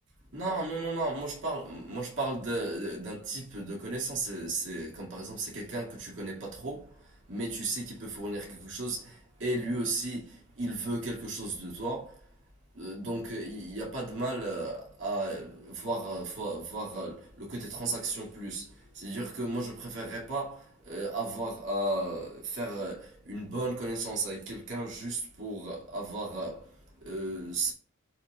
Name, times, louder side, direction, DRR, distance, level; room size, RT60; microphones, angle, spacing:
voice 1, 0.3-12.2 12.7-27.7, right 2 dB, 65° right, 2.4 m, -35 dB
13.0 x 4.7 x 2.4 m
head